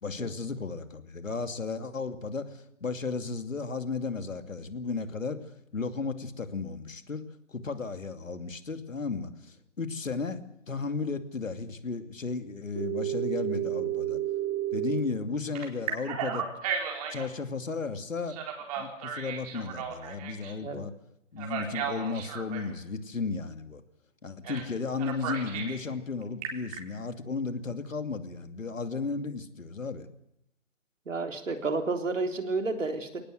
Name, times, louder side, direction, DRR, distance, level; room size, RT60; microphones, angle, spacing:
voice 1, 0.0-5.4 5.7-7.2 7.5-14.2 14.7-16.5 17.1-18.4 18.8-20.9 21.3-23.8 24.2-30.1, left 4 dB, 80° left, 8 dB, 2.7 m, -34 dB
Telephone, 12.8-15.0 15.5-17.3 18.3-20.5 21.4-22.7 24.4-24.7 25.0-25.8 26.2-26.8, right 10 dB, 30° right, 4.4 m, -33 dB
voice 2, 31.1-33.2, right 3 dB, 75° right, 5 dB, 3.6 m, -31 dB
22.0 x 19.0 x 8.0 m, 0.81 s
figure-of-eight pair, 145°, 38 cm